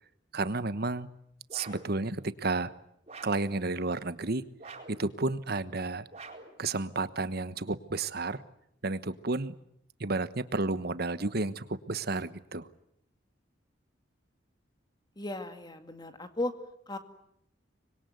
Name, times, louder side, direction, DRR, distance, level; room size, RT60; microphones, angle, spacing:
voice 1, 0.3-1.1 1.5-2.7 3.2-4.4 4.9-6.1 6.6-8.4 8.8-9.5 10.0-12.7, right 3 dB, 55° right, 14 dB, 1.2 m, -31 dB
sound 1, 1.5-2.0 3.1-3.5 4.6-5.1 6.1-6.6, right 3 dB, 35° right, 4.4 m, -46 dB
voice 2, 15.2-16.5 16.9-17.0, left 2 dB, 20° left, 8 dB, 2.2 m, -35 dB
25.5 x 22.0 x 9.4 m, 0.73 s
head